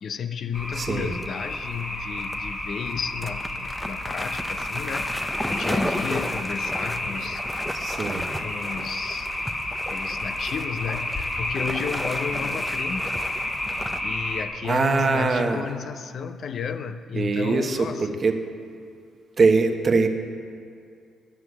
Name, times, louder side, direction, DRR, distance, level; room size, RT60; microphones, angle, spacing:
voice 1, 0.0-7.4 8.4-9.3 9.9-13.3 14.0-18.2, left 6 dB, 55° left, 10 dB, 0.5 m, -33 dB
sound 1, 0.5-14.5, left 1 dB, 20° left, 1.5 m, -31 dB
voice 2, 0.8-1.1 7.7-8.3 14.6-15.6 17.1-18.4 19.4-20.1, right 4 dB, 40° right, 6 dB, 1.0 m, -22 dB
sound 2, 1.1-1.8 2.2-2.4 2.9-3.0 3.2-14.0, equal, 5° left, 0.6 m, -34 dB
10.0 x 7.8 x 8.1 m, 2.3 s
cardioid pair, 90°, 0 cm